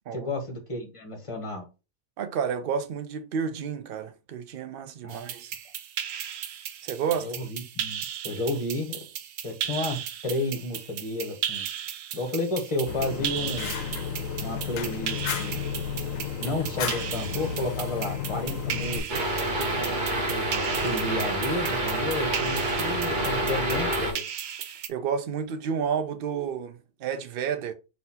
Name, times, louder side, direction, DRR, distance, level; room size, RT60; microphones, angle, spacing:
voice 1, 0.1-1.7 5.0-5.3 7.2-9.0 9.4-11.7 12.1-13.7 14.4-15.6 16.4-19.0 20.3-24.2, left 1 dB, 25° left, 0.9 m, -32 dB
voice 2, 2.2-5.6 6.8-7.3 19.8-20.1 24.9-27.7, right 7 dB, 55° right, 0.7 m, -31 dB
sound 1, 5.1-24.9, right 9 dB, 75° right, 1.0 m, -36 dB
Fire, 12.9-19.0, left 7 dB, 75° left, 1.0 m, -32 dB
sound 2, 19.1-24.1, right 1 dB, 40° right, 1.2 m, -27 dB
4.1 x 2.7 x 4.1 m
omnidirectional pair, 1.4 m